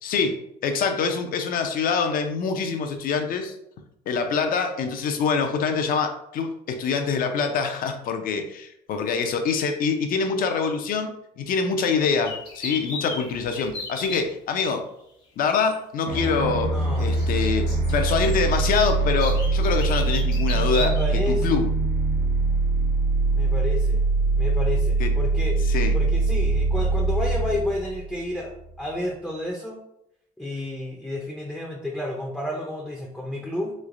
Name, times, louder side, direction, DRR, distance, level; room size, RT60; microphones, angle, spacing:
voice 1, 0.0-3.5 4.1-14.9 15.4-21.0 21.3-21.7 25.0-25.1 25.6-26.0, left 5 dB, 55° left, 6 dB, 0.5 m, -25 dB
sound 1, 12.2-14.2 15.7-15.8 17.0-21.1, left 3 dB, 75° left, 1.1 m, -35 dB
sound 2, 16.1-28.8, right 3 dB, 55° right, 0.8 m, -23 dB
voice 2, 16.7-17.1 20.8-21.6 23.3-24.0 24.4-25.6 25.9-29.8 30.4-33.7, left 1 dB, 5° left, -1 dB, 0.4 m, -31 dB
3.1 x 3.1 x 2.5 m, 0.78 s
cardioid pair, 110°, 17 cm